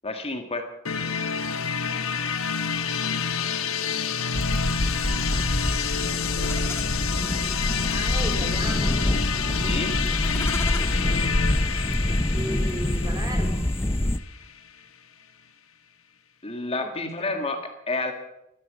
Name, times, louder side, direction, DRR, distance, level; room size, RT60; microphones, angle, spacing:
voice 1, 0.0-0.7 9.6-10.0 16.4-18.1, left 3 dB, 30° left, 5 dB, 1.7 m, -30 dB
sound 1, 0.8-14.6, left 6 dB, 75° left, 1.3 m, -28 dB
sound 2, 4.3-14.2, left 1 dB, 10° left, 0.6 m, -26 dB
voice 2, 4.5-5.2 5.8-6.8 7.8-9.0 12.0-13.7 16.8-17.3, right 1 dB, 20° right, 5 dB, 3.2 m, -37 dB
14.0 x 12.0 x 8.5 m, 0.87 s
head